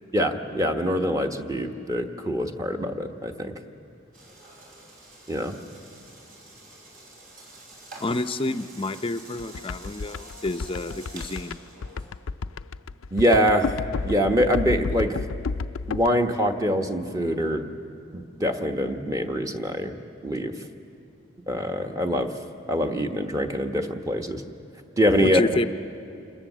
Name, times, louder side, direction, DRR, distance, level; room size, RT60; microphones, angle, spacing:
voice 1, 0.1-3.6 5.3-5.5 13.1-13.7 14.0-15.2 15.9-17.7 18.1-19.9 20.2-20.5 21.5-22.3 22.7-24.4 25.0-25.4, equal, 15° right, 4 dB, 1.2 m, -24 dB
sound 1, 4.1-12.1, right 2 dB, 45° right, 6.4 m, -47 dB
voice 2, 8.0-11.6 25.2-25.7, left 2 dB, 25° left, 11 dB, 0.6 m, -28 dB
sound 2, 9.4-16.1, left 4 dB, 80° left, 0.5 m, -31 dB
27.5 x 20.0 x 7.4 m, 2.7 s
head